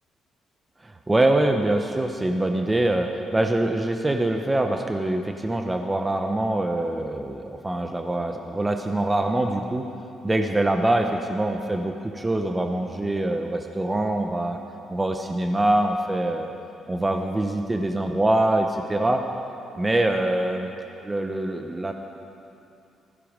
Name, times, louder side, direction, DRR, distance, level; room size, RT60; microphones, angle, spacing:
voice 1, 0.8-9.9 10.2-14.6 14.9-16.5 16.9-19.2 19.8-20.7 21.0-21.9, right 1 dB, 20° right, 4 dB, 1.0 m, -24 dB
15.5 x 14.5 x 5.2 m, 2.7 s
cardioid pair, 75°, 0 cm